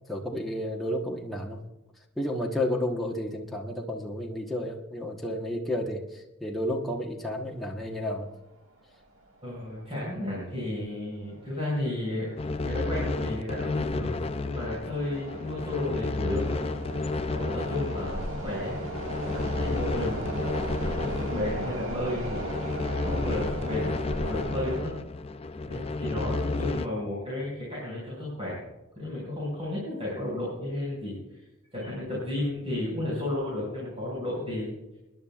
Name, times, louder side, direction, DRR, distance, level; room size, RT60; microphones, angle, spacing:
voice 1, 0.1-1.6 2.2-8.3, left 1 dB, ahead, -2 dB, 1.1 m, -31 dB
sound 1, 7.9-8.0 8.3-8.4 9.1-9.4 9.6-9.8 10.4-10.7 11.2-24.8, right 1 dB, 65° right, 1.9 m, -38 dB
voice 2, 9.4-12.3 12.6-14.1 14.4-16.6 17.3-18.8 19.3-22.8 23.0-24.9 25.6-28.6 28.9-31.4 31.7-34.7, left 1 dB, 30° right, -7 dB, 5.5 m, -33 dB
sound 2, 12.4-26.9, left 3 dB, 30° left, 0.4 m, -32 dB
28.5 x 10.5 x 2.4 m, 0.97 s
head